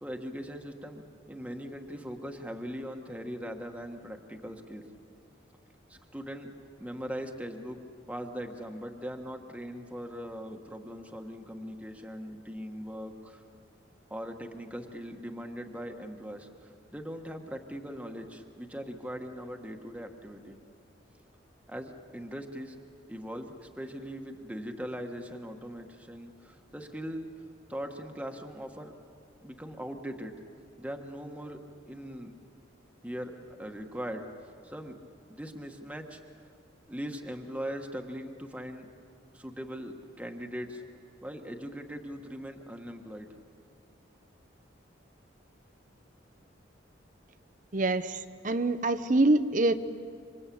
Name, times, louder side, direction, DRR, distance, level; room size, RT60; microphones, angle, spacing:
voice 1, 0.0-4.8 5.9-6.5 6.8-7.8 8.1-13.4 14.1-20.6 21.7-22.8 23.1-27.3 27.7-28.9 29.4-30.4 30.8-31.6 31.8-32.3 33.0-33.3 33.6-34.9 35.3-36.5 36.9-38.9 39.3-40.8 41.2-43.3, equal, 5° right, 3 dB, 1.4 m, -40 dB
voice 2, 47.7-48.2 48.4-49.7, right 2 dB, 40° right, 11 dB, 0.8 m, -25 dB
27.0 x 25.5 x 8.6 m, 2.3 s
head